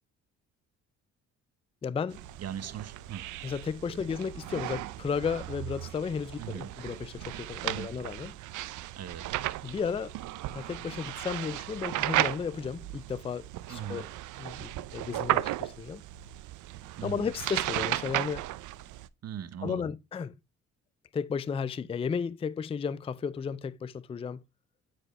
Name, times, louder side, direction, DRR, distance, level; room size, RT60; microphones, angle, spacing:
voice 1, 1.8-2.2 3.4-8.3 9.6-10.2 10.5-14.1 14.4-16.0 17.0-18.5 19.6-20.3 21.1-24.4, left 6 dB, 20° left, 0.4 m, -34 dB
sound 1, 2.1-19.1, right 16 dB, 80° right, 0.5 m, -35 dB
voice 2, 2.4-3.3 6.4-6.7 7.6-7.9 9.0-9.3 13.7-14.0 17.0-17.2 19.2-19.9, right 9 dB, 55° right, 0.9 m, -39 dB
10.0 x 4.8 x 3.2 m
cardioid pair, 90°, 30 cm